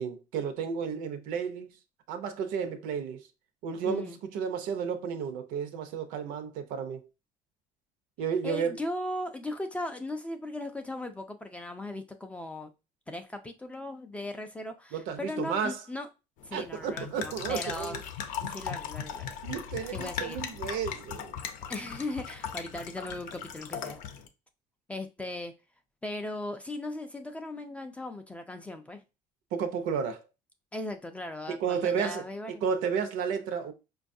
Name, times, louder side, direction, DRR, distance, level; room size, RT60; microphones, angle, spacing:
voice 1, 0.0-1.7 2.1-3.2 3.6-7.1 8.2-8.8 14.9-15.8 16.5-18.0 18.4-18.5 19.4-21.4 29.5-30.2 31.5-32.2 32.6-33.7, right 6 dB, 75° right, 0.6 m, -32 dB
voice 2, 3.8-4.2 8.4-12.7 13.1-16.1 16.4-18.0 18.5-19.4 19.9-20.4 21.7-24.0 24.9-25.5 26.0-29.0 30.7-32.5, left 1 dB, 10° left, 0.3 m, -38 dB
sound 1, 16.4-24.3, left 8 dB, 60° left, 0.6 m, -38 dB
5.1 x 2.3 x 2.6 m
cardioid pair, 155°, 14 cm